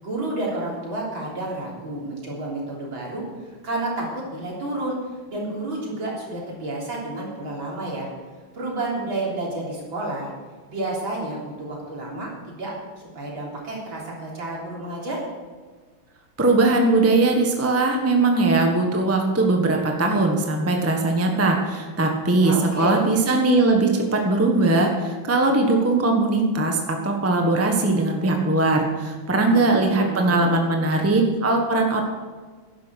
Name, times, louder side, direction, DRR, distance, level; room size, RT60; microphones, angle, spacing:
voice 1, 0.0-5.0 5.3-8.1 8.5-10.3 10.7-12.7 13.1-15.2 22.4-23.0 29.3-30.4, right 2 dB, 70° right, -4 dB, 4.4 m, -30 dB
voice 2, 16.4-32.0, right 2 dB, 10° right, 2 dB, 1.1 m, -20 dB
11.0 x 11.0 x 6.4 m, 1.5 s
omnidirectional pair, 2.3 m